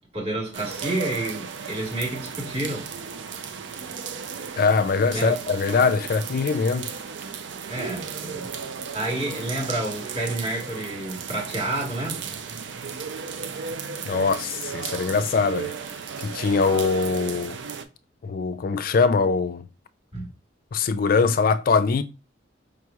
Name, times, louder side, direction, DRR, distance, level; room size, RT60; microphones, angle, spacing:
voice 1, 0.1-2.9 5.1-5.4 7.7-8.5 8.9-12.3 20.1-20.3, right 1 dB, 30° right, 1.4 m, -29 dB
sound 1, 0.5-17.8, right 6 dB, 65° right, 0.4 m, -35 dB
voice 2, 4.6-6.9 14.0-15.7 16.2-17.6 18.2-19.7 20.7-22.0, left 4 dB, 50° left, 0.4 m, -22 dB
5.2 x 2.9 x 2.3 m
head